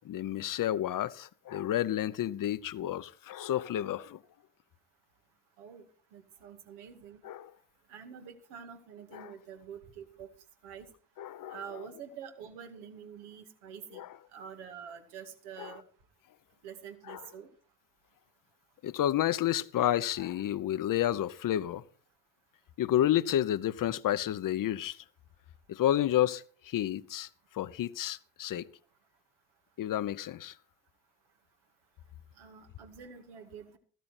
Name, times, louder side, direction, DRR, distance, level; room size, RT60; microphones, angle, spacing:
voice 1, 0.0-4.2 7.2-7.5 9.1-9.3 11.2-11.6 13.9-14.1 15.6-15.8 17.1-17.3 18.8-21.8 22.8-25.0 25.7-27.3 27.5-28.7 29.8-30.5, left 12 dB, 50° left, 0.9 m, -30 dB
voice 2, 6.1-7.2 7.9-10.3 10.6-10.9 11.5-14.0 14.3-15.8 16.6-17.5 32.4-33.8, right 7 dB, 75° right, 2.2 m, -47 dB
15.0 x 12.5 x 4.4 m
hypercardioid pair, 50°, 41 cm